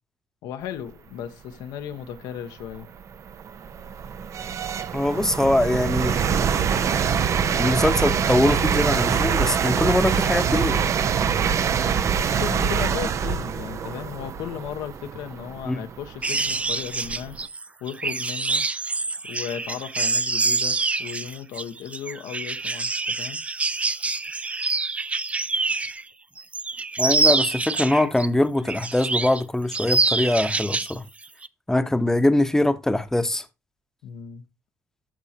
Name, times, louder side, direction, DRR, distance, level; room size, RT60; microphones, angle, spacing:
voice 1, 0.4-2.9 12.1-17.4 17.8-18.6 19.2-23.4 34.0-34.4, left 9 dB, 85° left, 1.2 m, -35 dB
sound 1, 1.9-2.0 2.6-17.4, right 7 dB, 50° right, 0.8 m, -24 dB
voice 2, 4.9-6.2 7.6-10.8 15.6-15.8 27.0-31.0 31.7-33.4, left 1 dB, 5° left, 1.0 m, -22 dB
sound 2, 16.2-26.0 26.4-28.3 28.7-29.4 29.7-30.9 31.2-31.5, right 3 dB, 20° right, 0.5 m, -26 dB
14.0 x 4.8 x 2.9 m
cardioid pair, 90°, 6 cm